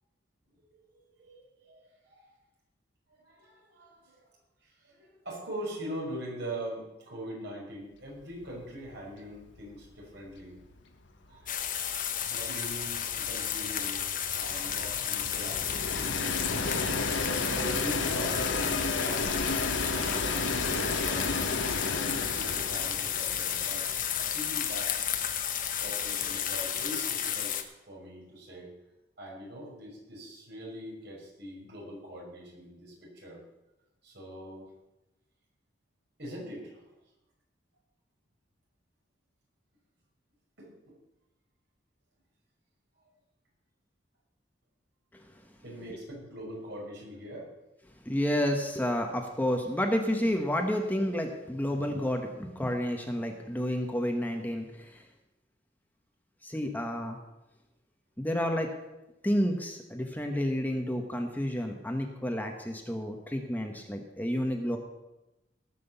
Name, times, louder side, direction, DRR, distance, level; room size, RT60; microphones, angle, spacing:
voice 1, 0.9-2.3 3.1-4.2 4.6-10.6 11.3-14.0 14.3-17.2 17.5-19.6 19.8-21.3 21.8-23.8 24.2-25.0 25.8-28.7 29.2-33.4 34.0-34.7 36.2-36.8 40.6-41.0 45.6-47.5, equal, 65° right, -3 dB, 6.2 m, -43 dB
Train, 8.4-8.6 8.9-9.0 9.3-26.7, left 3 dB, 80° left, 1.5 m, -34 dB
sound 1, 11.5-27.6, left 9 dB, 45° left, 1.1 m, -32 dB
voice 2, 48.0-55.0 56.4-57.2 58.2-58.7 59.2-64.8, equal, 10° left, 3 dB, 1.2 m, -30 dB
18.0 x 6.2 x 7.1 m, 0.97 s
head